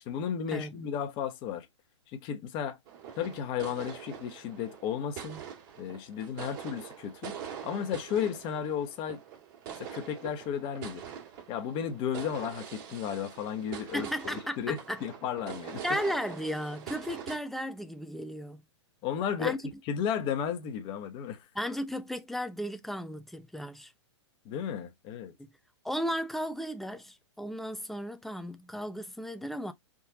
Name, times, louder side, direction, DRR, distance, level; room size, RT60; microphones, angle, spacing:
voice 1, 0.0-1.7 2.1-2.8 3.1-5.4 5.8-7.4 7.6-9.2 9.8-11.0 11.5-15.8 19.0-19.6 19.8-21.4 24.4-25.3, left 8 dB, 30° left, 1.1 m, -34 dB
sound 1, 2.9-17.4, right 9 dB, 45° right, 1.9 m, -44 dB
voice 2, 13.9-15.0 15.8-18.6 19.4-19.6 21.6-23.9 25.8-29.7, equal, ahead, 0.6 m, -35 dB
4.4 x 3.7 x 2.7 m
hypercardioid pair, 120°, 15 cm